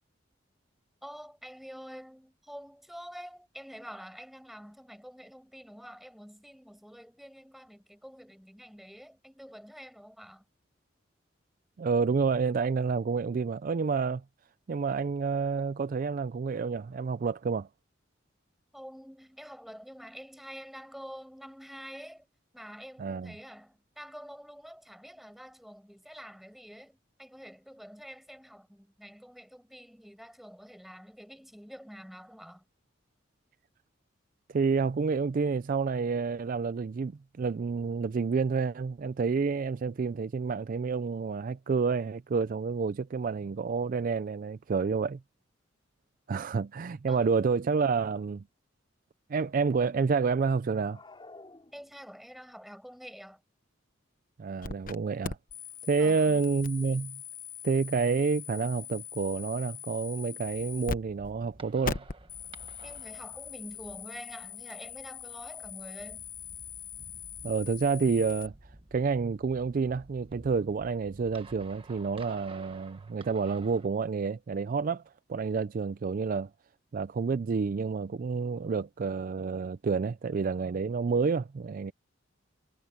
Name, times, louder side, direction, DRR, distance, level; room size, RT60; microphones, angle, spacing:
voice 1, 1.0-10.4 18.7-22.3 22.5-32.6 47.1-47.3 51.7-53.4 56.0-56.4 62.8-66.2, equal, ahead, 6.2 m, -47 dB
voice 2, 11.8-14.2 14.7-17.7 23.0-23.3 34.5-45.2 46.3-48.4 49.3-51.0 54.4-55.4 55.9-57.2 57.6-62.0 67.4-68.5 68.9-75.0 75.3-76.5 76.9-81.9, right 5 dB, 45° right, 0.4 m, -29 dB
sound 1, 50.7-52.3, left 2 dB, 25° left, 2.7 m, -52 dB
sound 2, 54.6-55.0 55.2-61.0 61.2-61.3 61.8-68.5, left 6 dB, 45° left, 1.0 m, -41 dB
sound 3, 60.5-73.9, right 2 dB, 30° right, 1.4 m, -53 dB
head